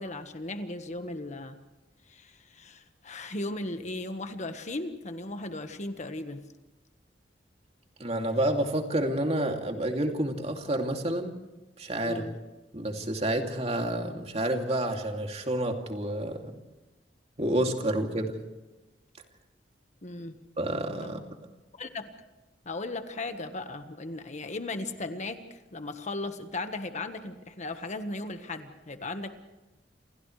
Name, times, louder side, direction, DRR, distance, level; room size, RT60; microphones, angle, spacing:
voice 1, 0.0-1.6 2.1-6.4 12.0-12.4 20.0-20.4 21.7-22.1 22.6-29.3, left 2 dB, 40° left, 7 dB, 1.5 m, -37 dB
voice 2, 8.0-11.3 11.8-12.2 12.7-16.5 17.4-18.4 20.6-21.2, right 1 dB, 35° right, 3 dB, 2.7 m, -29 dB
29.0 x 28.0 x 3.3 m, 1.1 s
head